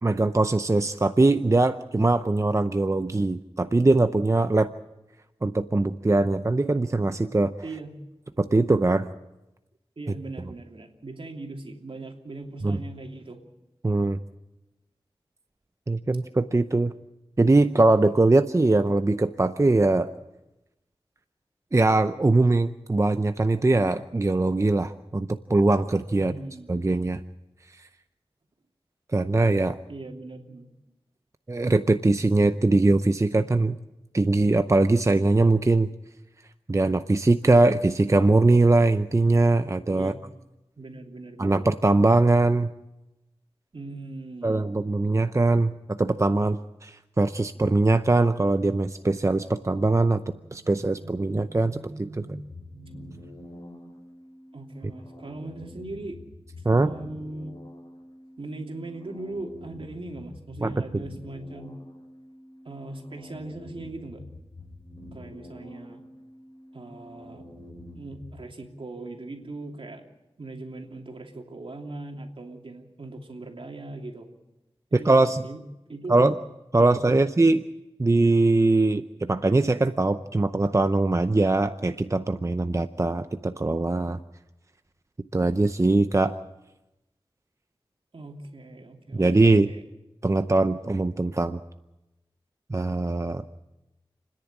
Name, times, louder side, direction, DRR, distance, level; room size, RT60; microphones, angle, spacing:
voice 1, 0.0-4.7 5.4-7.5 8.4-9.1 12.6-12.8 13.8-14.2 15.9-16.9 17.4-20.1 21.7-26.3 26.7-27.2 29.1-29.8 31.5-33.8 34.1-35.9 36.7-40.1 41.4-42.7 44.4-52.1 56.6-56.9 60.6-61.0 74.9-75.4 76.1-76.3 76.7-77.6 78.0-84.2 85.3-86.4 89.1-89.7 90.2-91.6 92.7-93.6, right 2 dB, 30° right, 10 dB, 0.7 m, -21 dB
voice 2, 7.6-8.0 10.0-13.4 26.1-26.8 29.9-30.7 39.9-40.2 40.8-41.6 43.7-44.6 50.2-53.9 54.5-56.2 56.7-57.6 58.4-61.8 62.6-64.2 65.1-66.0 66.7-67.5 67.9-70.0 70.4-74.3 74.9-75.6 75.9-76.3 76.8-77.2 88.1-89.8, right 2 dB, 65° right, 2 dB, 2.9 m, -40 dB
sound 1, 52.4-68.5, left 1 dB, 50° left, 5.1 m, -47 dB
30.0 x 10.5 x 8.8 m, 0.97 s
wide cardioid pair, 50°, 10 cm